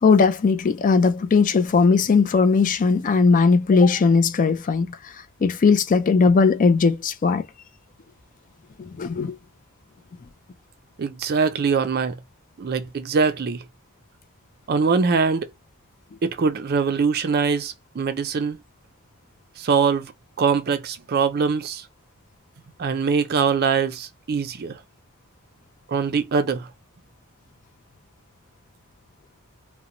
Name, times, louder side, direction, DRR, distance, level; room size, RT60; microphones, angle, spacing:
voice 1, 0.0-5.1 5.4-7.4 9.0-9.4, left 4 dB, 35° left, 0.3 m, -18 dB
voice 2, 11.0-12.2 12.6-13.6 14.7-15.5 16.2-18.6 19.6-20.1 20.4-21.8 22.8-24.8 25.9-26.7, right 5 dB, 45° right, 0.4 m, -22 dB
2.5 x 2.1 x 2.9 m
head